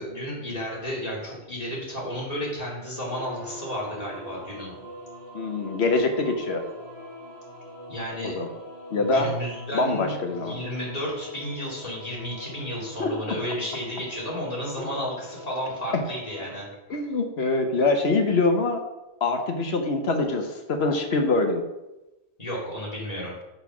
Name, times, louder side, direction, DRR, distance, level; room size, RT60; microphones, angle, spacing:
voice 1, 0.0-4.7 7.9-8.4 8.9-10.1 10.4-16.7 22.4-23.4, equal, 35° left, -6 dB, 3.1 m, -32 dB
sound 1, 3.1-16.6, equal, 25° right, 2.6 m, -43 dB
voice 2, 5.3-6.6 8.2-8.5 8.9-9.3 9.7-10.6 13.0-13.4 15.9-16.0 16.9-18.8 19.2-21.6, left 3 dB, 70° left, 4 dB, 1.3 m, -24 dB
6.8 x 5.6 x 5.9 m, 1.0 s
omnidirectional pair, 1.1 m